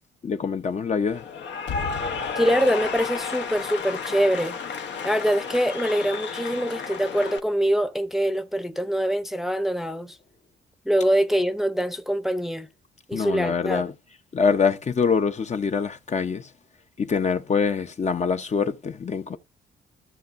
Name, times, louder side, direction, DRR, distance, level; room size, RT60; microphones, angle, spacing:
voice 1, 0.2-1.2 13.1-13.9 14.3-16.5 17.0-19.4, left 5 dB, 35° left, 0.8 m, -24 dB
Cheering / Applause, 1.1-7.4, left 5 dB, 65° left, 1.1 m, -32 dB
voice 2, 2.4-4.6 5.0-10.2 10.9-12.7 13.1-13.8, equal, ahead, 0.8 m, -24 dB
14.0 x 6.6 x 2.6 m
cardioid pair, 90°, 20 cm